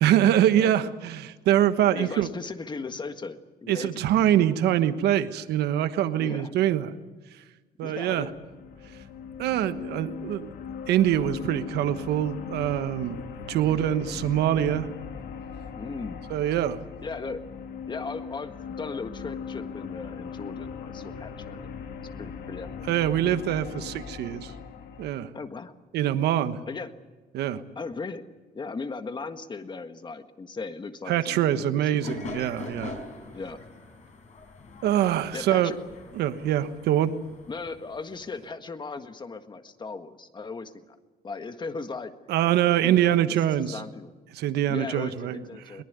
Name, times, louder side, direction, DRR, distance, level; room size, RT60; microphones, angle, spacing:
voice 1, 0.0-2.3 3.7-6.9 7.8-8.3 9.4-10.5 10.9-13.2 13.5-14.9 16.3-16.8 22.9-24.5 25.0-25.3 25.9-26.6 27.3-27.6 31.1-33.0 34.8-35.7 36.1-37.1 42.3-43.8 44.3-45.4, right 11 dB, 75° right, 11 dB, 1.3 m, -24 dB
voice 2, 0.6-0.9 1.9-4.0 6.2-6.5 7.8-8.4 13.7-14.3 15.7-16.2 17.0-17.4 17.9-21.7 22.0-22.9 25.3-25.7 26.7-26.9 27.8-28.3 28.5-32.1 33.3-33.6 35.3-35.8 37.5-41.0 41.2-42.1 42.8-43.4 43.7-44.1 44.7-45.8, left 4 dB, 25° left, 9 dB, 1.7 m, -37 dB
sound 1, 8.1-25.1, left 6 dB, 70° left, 2.0 m, -39 dB
sound 2, 32.0-38.5, left 3 dB, 45° left, 5.2 m, -43 dB
22.5 x 19.5 x 9.5 m, 1.3 s
cardioid pair, 110°, 17 cm